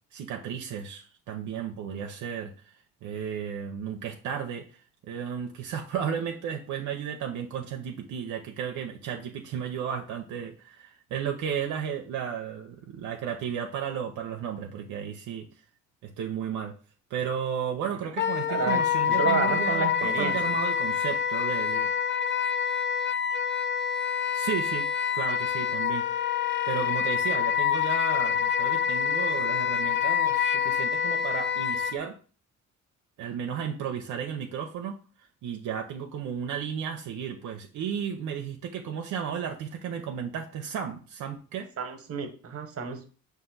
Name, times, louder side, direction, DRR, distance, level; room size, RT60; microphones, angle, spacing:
voice 1, 0.1-2.7 3.0-15.5 16.0-16.7 17.1-21.9 24.3-24.9 25.1-26.1 26.7-32.2 33.2-35.0 35.4-41.7, right 8 dB, 80° right, 3 dB, 0.6 m, -34 dB
Wind instrument woodwind instrument, 18.2-31.9, left 8 dB, 40° left, 0.4 m, -26 dB
voice 2, 18.5-20.4 41.8-43.0, right 6 dB, 50° right, 7 dB, 1.0 m, -31 dB
5.1 x 2.6 x 3.8 m, 0.38 s
cardioid pair, 90°, 30 cm